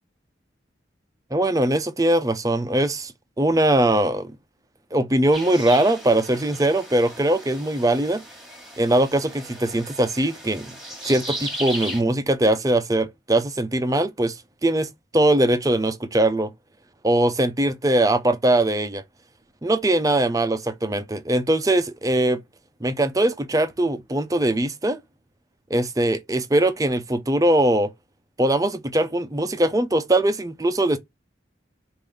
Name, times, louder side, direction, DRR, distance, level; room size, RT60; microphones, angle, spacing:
voice 1, 1.3-3.1 3.4-4.3 4.9-8.2 8.8-10.8 11.0-16.5 17.0-19.0 19.6-22.4 22.8-25.0 25.7-27.9 28.4-31.0, right 1 dB, 20° right, 0.6 m, -21 dB
sound 1, 5.3-12.0, right 1 dB, ahead, 1.5 m, -36 dB
5.3 x 2.6 x 3.3 m
head